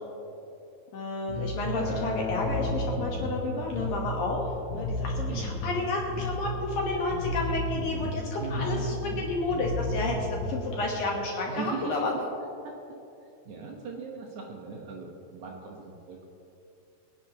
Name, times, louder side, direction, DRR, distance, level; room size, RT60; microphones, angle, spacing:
voice 1, 0.9-4.5 4.7-12.1, left 2 dB, 65° left, -2 dB, 2.5 m, -31 dB
Bass guitar, 1.3-10.8, left 1 dB, 85° left, 4.7 m, -33 dB
Acoustic guitar, 1.8-7.0, left 2 dB, 50° left, 5.1 m, -39 dB
voice 2, 8.4-9.3 11.5-12.2 12.6-12.7 13.5-16.3, right 3 dB, 75° right, -1 dB, 1.8 m, -38 dB
24.5 x 11.0 x 3.0 m, 2.7 s
omnidirectional pair, 5.3 m